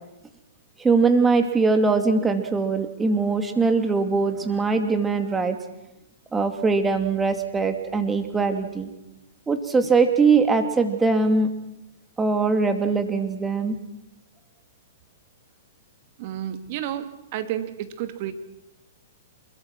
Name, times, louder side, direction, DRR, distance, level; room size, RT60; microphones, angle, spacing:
voice 1, 0.8-5.6 6.3-8.9 9.5-11.5 12.2-13.8, right 4 dB, 10° right, 6 dB, 2.7 m, -21 dB
voice 2, 16.2-18.3, right 11 dB, 50° right, 8 dB, 2.5 m, -31 dB
28.5 x 22.0 x 6.1 m, 0.93 s
hypercardioid pair, 125°, 0 cm